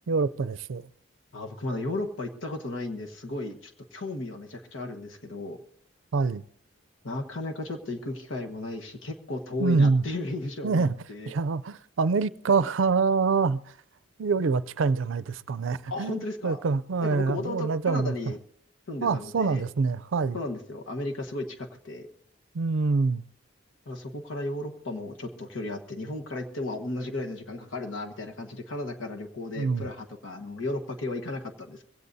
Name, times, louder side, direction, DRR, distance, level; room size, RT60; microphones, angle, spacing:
voice 1, 0.1-0.9 6.1-6.4 9.6-10.0 10.6-10.9 11.3-13.7 14.2-18.1 19.0-20.4 22.5-23.2 29.6-29.9, right 4 dB, 80° right, 0.5 m, -25 dB
voice 2, 1.3-5.6 7.0-11.3 15.9-16.6 17.0-18.4 18.9-19.6 20.3-22.1 23.8-31.8, left 2 dB, 90° left, 1.3 m, -34 dB
22.5 x 16.5 x 2.7 m
head